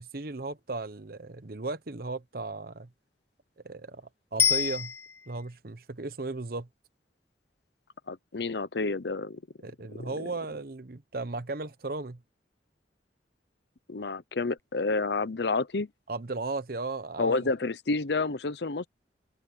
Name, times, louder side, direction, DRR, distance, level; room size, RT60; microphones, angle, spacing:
voice 1, 0.0-2.9 3.6-4.9 5.3-6.7 9.6-12.2 16.1-17.5, right 3 dB, 55° right, 0.9 m, -36 dB
Bicycle bell, 4.4-5.5 14.6-14.7, left 7 dB, 15° left, 0.4 m, -27 dB
voice 2, 8.1-9.4 10.0-10.3 13.9-15.9 17.2-18.9, left 3 dB, 70° left, 0.8 m, -29 dB
head